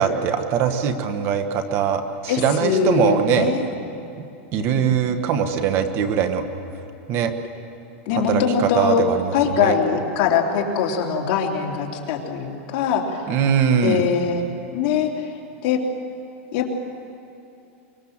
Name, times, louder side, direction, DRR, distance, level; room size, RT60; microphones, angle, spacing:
voice 1, 0.0-3.5 4.2-4.3 4.5-6.4 7.1-7.3 8.3-9.7 13.3-14.1, right 8 dB, 35° right, 8 dB, 1.4 m, -21 dB
voice 2, 2.3-3.6 4.6-4.8 8.0-9.0 9.3-13.2 13.8-14.4 14.7-15.3 15.6-15.8 16.5-16.8, left 6 dB, 45° left, 0 dB, 3.3 m, -22 dB
24.5 x 22.5 x 7.4 m, 2.6 s
supercardioid pair, 160°, 7 cm